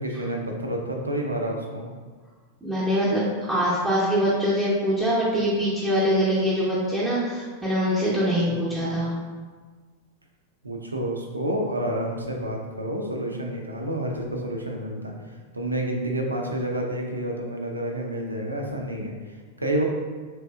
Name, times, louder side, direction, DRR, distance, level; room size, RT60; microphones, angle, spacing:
voice 1, 0.0-1.9 8.5-8.9 10.6-15.1 15.5-19.8, right 1 dB, 80° right, 1 dB, 0.4 m, -29 dB
voice 2, 2.6-9.1, equal, 10° right, -9 dB, 0.7 m, -23 dB
3.3 x 3.0 x 2.3 m, 1.5 s
figure-of-eight pair, 95°, 0 cm